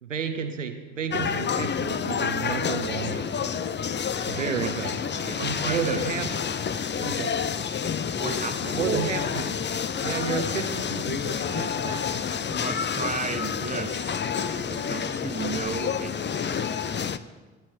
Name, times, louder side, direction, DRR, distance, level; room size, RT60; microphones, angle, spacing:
voice 1, 0.0-3.5 4.3-5.0 5.4-6.3 7.0-7.3 8.7-9.4 10.0-12.0, right 6 dB, 90° right, 7 dB, 0.9 m, -31 dB
sound 1, 1.1-17.2, left 7 dB, 30° left, 0.8 m, -29 dB
voice 2, 4.1-4.7 5.1-6.1 6.7-7.2 8.2-9.2 9.5-9.7 12.5-16.8, right 4 dB, 20° right, 7 dB, 1.7 m, -35 dB
sound 2, 6.7-15.6, left 3 dB, 80° left, 1.9 m, -51 dB
22.0 x 9.6 x 4.4 m, 1.3 s
figure-of-eight pair, 50°, 37 cm